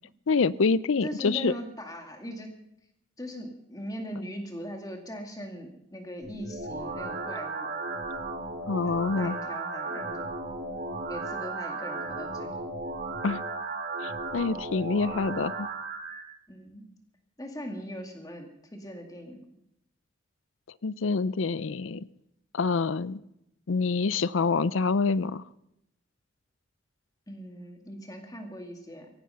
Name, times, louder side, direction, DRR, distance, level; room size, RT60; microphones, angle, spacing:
voice 1, 0.3-1.5 8.7-9.4 13.2-13.4 14.0-15.7 20.8-22.1 22.5-23.2 23.7-25.4, left 4 dB, 80° left, 19 dB, 0.5 m, -26 dB
voice 2, 1.0-2.5 3.2-7.7 9.2-10.3 11.1-12.6 16.5-16.9 17.4-19.5 27.3-29.1, equal, 20° left, 4 dB, 2.1 m, -40 dB
sound 1, 6.2-16.2, right 3 dB, 50° right, 2.9 m, -35 dB
17.5 x 15.0 x 5.6 m, 0.83 s
head